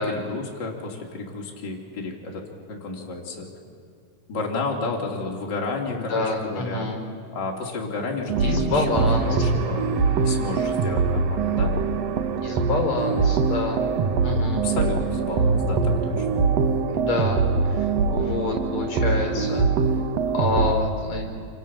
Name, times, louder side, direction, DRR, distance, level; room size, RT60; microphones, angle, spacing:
voice 1, 0.0-2.4 2.7-3.5 4.3-6.9 7.3-10.0 10.2-11.7 14.5-16.4, left 3 dB, 30° left, -1 dB, 3.7 m, -31 dB
voice 2, 5.9-7.0 8.4-9.4 12.3-13.9 14.2-14.7 16.9-17.4 17.7-19.7 20.3-21.3, left 3 dB, 45° left, 2 dB, 5.9 m, -27 dB
sound 1, 8.3-20.7, right 4 dB, 85° right, 1.4 m, -23 dB
28.0 x 27.0 x 7.3 m, 2.5 s
omnidirectional pair, 4.6 m